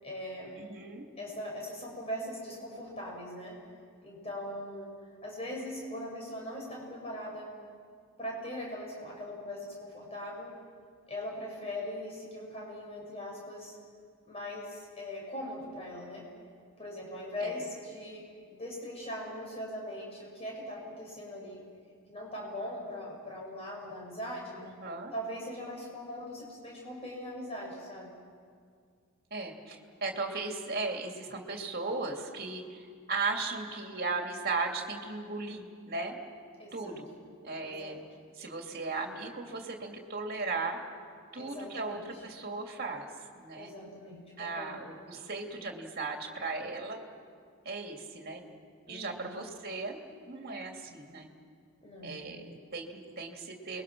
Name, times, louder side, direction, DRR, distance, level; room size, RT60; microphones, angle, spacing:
voice 1, 0.0-0.5 1.2-3.6 4.0-4.9 5.2-7.5 8.2-10.5 11.1-13.8 14.2-16.2 16.8-18.2 18.5-21.6 22.1-24.6 25.1-28.1 36.6-37.0 37.6-38.0 41.3-42.2 43.5-44.8 48.9-49.3 51.8-52.2, left 1 dB, 25° left, -2 dB, 6.3 m, -40 dB
voice 2, 0.6-1.1 17.4-17.5 24.6-25.1 29.3-36.2 36.7-37.1 37.4-38.0 38.4-40.8 41.3-43.1 43.3-43.7 44.4-47.0 47.6-48.4 48.9-50.0 50.3-51.3 52.0-53.8, right 3 dB, 45° right, 2 dB, 2.6 m, -37 dB
29.0 x 22.0 x 6.2 m, 2.1 s
head